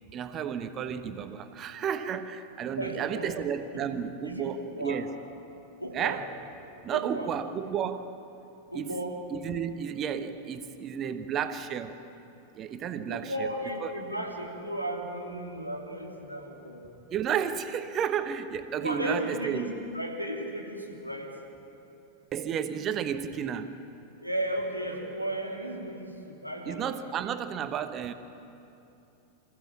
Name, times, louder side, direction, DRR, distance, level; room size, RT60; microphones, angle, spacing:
voice 1, 0.1-5.2 5.9-6.3 6.8-8.1 8.7-9.0 9.3-12.0 12.5-13.5 13.8-13.9 17.1-19.7 22.3-23.8 26.6-28.1, right 8 dB, 30° right, 10 dB, 1.1 m, -32 dB
voice 2, 2.7-3.3 4.3-5.0 5.8-6.2 6.9-7.3 8.7-9.2 13.1-16.8 18.8-21.3 24.2-26.8, right 1 dB, 90° left, 0 dB, 2.8 m, -35 dB
26.0 x 15.0 x 7.3 m, 2.8 s
figure-of-eight pair, 90°, 0 cm